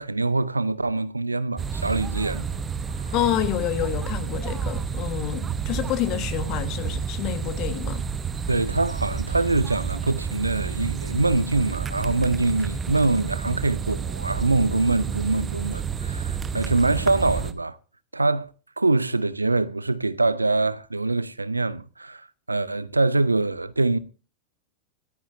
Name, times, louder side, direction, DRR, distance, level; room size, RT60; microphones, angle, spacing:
voice 1, 0.0-2.5 2.9-3.1 8.5-17.8 18.1-18.5 18.8-24.0, right 3 dB, 80° right, 0.5 m, -24 dB
sound 1, 1.6-17.5, right 6 dB, 20° right, 0.9 m, -30 dB
voice 2, 3.1-8.1, left 11 dB, 40° left, 1.4 m, -28 dB
24.5 x 9.8 x 2.7 m
figure-of-eight pair, 90°, 0 cm